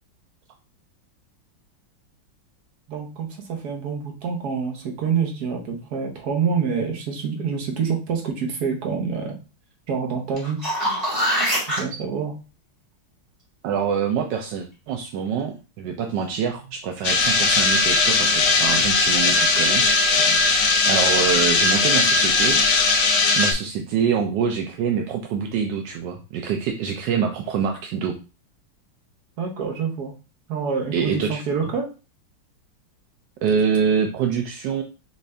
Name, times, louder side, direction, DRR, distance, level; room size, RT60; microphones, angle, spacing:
voice 1, 2.9-9.3 9.9-10.6 11.8-12.3 20.2-20.4 29.4-30.1 30.5-31.9, right 6 dB, 55° right, 2 dB, 1.3 m, -26 dB
sound 1, 10.4-11.8 16.6-16.7, equal, 20° right, 1.4 m, -23 dB
voice 2, 13.6-19.8 20.9-22.6 23.4-28.2 30.9-31.7 33.4-34.8, right 7 dB, 75° right, 3 dB, 1.0 m, -25 dB
sound 2, 17.0-23.5, left 4 dB, 75° left, 1.6 m, -19 dB
5.3 x 2.5 x 3.3 m, 0.32 s
omnidirectional pair, 2.3 m